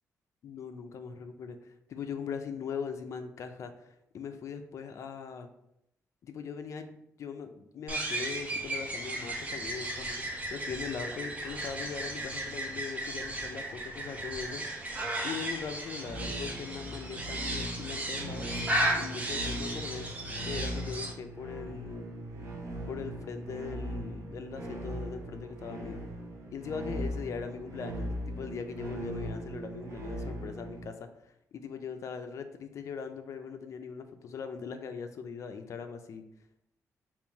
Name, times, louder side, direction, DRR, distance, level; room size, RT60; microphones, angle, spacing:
voice 1, 0.4-3.9 4.1-5.5 6.2-6.9 7.2-14.6 15.2-18.5 18.9-20.1 20.4-22.1 22.9-26.0 26.5-31.1 31.5-36.2, left 6 dB, 60° left, 8 dB, 0.4 m, -40 dB
sound 1, 7.9-21.1, right 1 dB, 25° right, 0.7 m, -35 dB
sound 2, 16.0-30.8, equal, 55° right, 0.7 m, -39 dB
3.6 x 2.5 x 4.6 m, 0.81 s
cardioid pair, 125°, 6 cm